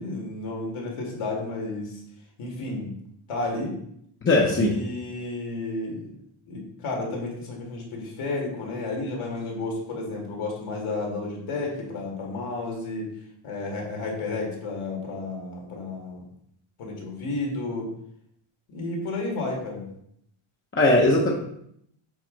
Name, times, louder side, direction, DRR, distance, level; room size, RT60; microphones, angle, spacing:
voice 1, 0.0-1.9 2.4-2.9 3.3-3.7 4.6-6.1 6.5-13.1 13.4-16.2 16.8-17.9 18.7-19.9, left 2 dB, 75° left, -1 dB, 2.3 m, -32 dB
voice 2, 4.2-4.8 20.7-21.3, left 2 dB, 25° left, -2 dB, 0.7 m, -19 dB
7.7 x 4.2 x 3.9 m, 0.72 s
wide cardioid pair, 175°, 50 cm